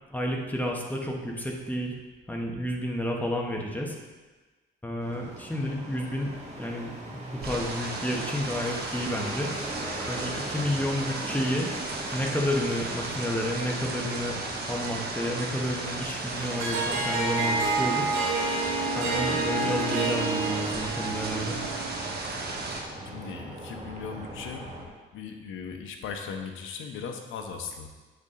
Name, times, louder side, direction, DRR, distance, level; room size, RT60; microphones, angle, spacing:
voice 1, 0.1-2.0 2.3-4.0 4.8-9.5 10.1-11.7 12.1-14.4 14.7-18.1 18.9-21.6, left 1 dB, 10° left, 0 dB, 1.1 m, -31 dB
sound 1, 5.0-24.9, right 1 dB, 35° right, 1.6 m, -41 dB
sound 2, 7.4-22.8, right 3 dB, 55° right, 1.2 m, -35 dB
Harp, 16.4-22.1, right 3 dB, 90° right, 1.0 m, -29 dB
voice 2, 23.1-24.7 25.1-27.9, left 6 dB, 80° left, 5 dB, 0.8 m, -38 dB
8.3 x 4.2 x 3.7 m, 1.3 s
cardioid pair, 90°, 20 cm